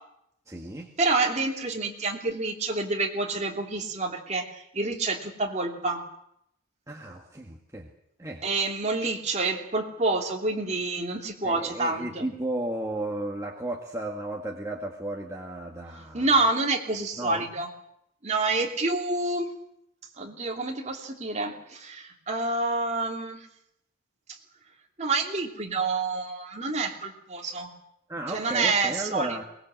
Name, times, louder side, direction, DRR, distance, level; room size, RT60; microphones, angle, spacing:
voice 1, 0.5-0.9 6.9-7.9 8.2-8.4 11.4-16.3 17.2-17.5 28.1-29.4, right 1 dB, 15° right, 0 dB, 1.8 m, -34 dB
voice 2, 1.0-6.1 8.4-12.3 16.1-17.7 18.2-19.5 20.2-23.5 25.0-27.7 28.3-29.4, right 3 dB, 30° right, 1 dB, 3.0 m, -28 dB
22.5 x 20.5 x 7.7 m, 0.76 s
head